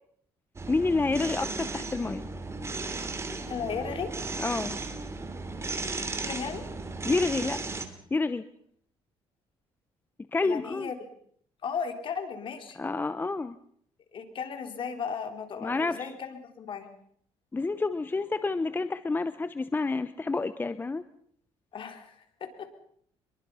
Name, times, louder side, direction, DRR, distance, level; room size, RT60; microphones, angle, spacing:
sound 1, 0.6-7.9, right 3 dB, 25° right, 3.1 m, -35 dB
voice 1, 0.7-2.3 4.4-4.8 7.0-7.6 8.1-8.4 10.3-10.9 12.8-13.6 15.6-16.1 17.5-21.0, left 3 dB, 20° left, 13 dB, 0.9 m, -29 dB
voice 2, 3.3-4.1 5.9-6.6 10.4-10.9 11.6-12.8 14.1-16.9 21.7-22.2 22.4-22.7, left 6 dB, 50° left, 6 dB, 4.0 m, -36 dB
25.5 x 22.5 x 5.7 m, 0.63 s
cardioid pair, 105°, 11 cm